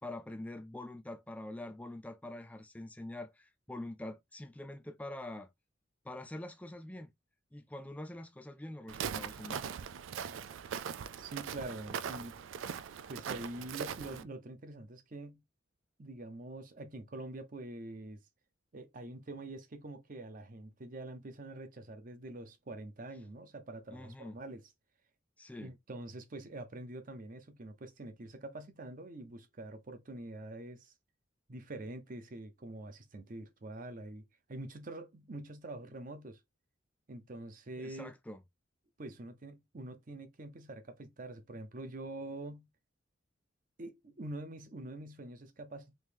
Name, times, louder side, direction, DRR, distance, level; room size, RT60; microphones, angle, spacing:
voice 1, 0.0-5.5 6.0-7.1 7.5-9.7 23.9-24.3 25.4-25.7 37.8-38.4, left 1 dB, 5° left, 0.3 m, -45 dB
Walk footsteps, 8.9-14.2, right 7 dB, 80° right, 0.3 m, -40 dB
voice 2, 11.2-12.4 13.1-15.4 16.0-18.2 18.7-24.6 25.6-30.9 31.5-34.2 34.5-36.4 37.1-38.1 39.0-42.7 43.8-45.9, right 2 dB, 45° right, 0.6 m, -45 dB
3.1 x 2.6 x 3.4 m
head